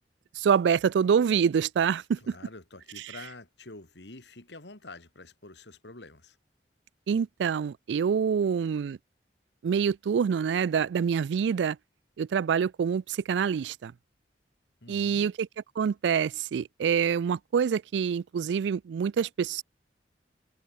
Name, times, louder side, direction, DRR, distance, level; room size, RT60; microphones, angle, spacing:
voice 1, 0.4-2.2 7.1-9.0 9.6-11.8 12.2-13.9 14.9-15.3 15.8-19.6, right 7 dB, 75° right, 0.3 m, -26 dB
voice 2, 2.2-6.4 14.8-15.3, left 2 dB, 75° left, 2.8 m, -47 dB
head